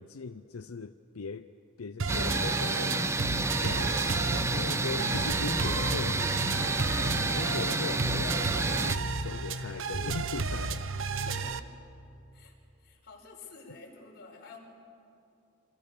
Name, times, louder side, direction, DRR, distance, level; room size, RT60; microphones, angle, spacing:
voice 1, 0.0-1.5 1.8-6.4 7.4-10.9, left 4 dB, 90° left, 10 dB, 0.6 m, -39 dB
sound 1, 2.0-11.6, right 4 dB, 65° right, 1.0 m, -33 dB
sound 2, 2.1-9.0, right 2 dB, 15° right, 0.6 m, -30 dB
voice 2, 11.1-11.6 12.3-12.5 12.8-14.6, left 3 dB, 50° left, -1 dB, 5.9 m, -49 dB
27.5 x 26.5 x 6.8 m, 2.5 s
head